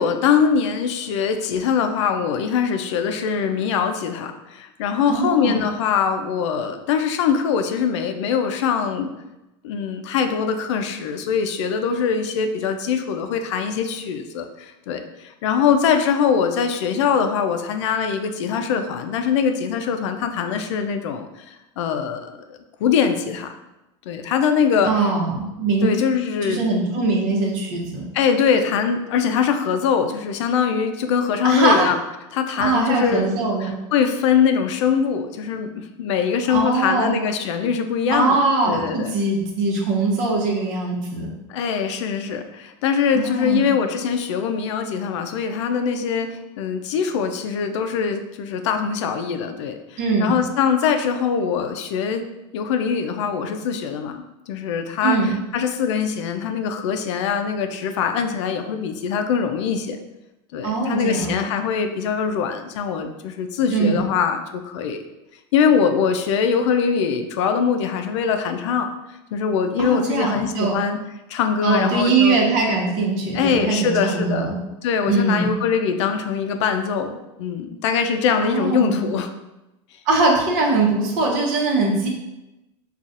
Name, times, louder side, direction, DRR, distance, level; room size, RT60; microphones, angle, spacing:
voice 1, 0.0-9.1 9.6-23.5 24.1-24.9 25.8-26.6 28.1-32.0 32.3-33.3 33.6-38.4 38.7-39.1 41.5-52.2 52.5-60.0 60.5-65.0 65.5-68.9 69.3-71.0 71.3-72.4 73.3-74.5 74.8-79.3, left 7 dB, 80° left, 7 dB, 0.4 m, -22 dB
voice 2, 5.1-5.6 24.8-25.9 26.4-28.1 31.4-31.8 32.6-33.7 36.5-37.1 38.1-41.3 43.1-43.7 50.0-50.3 55.0-55.3 60.6-61.3 63.7-64.0 69.8-70.8 71.6-74.6 75.1-75.5 78.4-79.0 80.1-82.1, right 3 dB, 55° right, -1 dB, 0.9 m, -21 dB
3.9 x 2.4 x 2.4 m, 0.98 s
supercardioid pair, 120°, 15 cm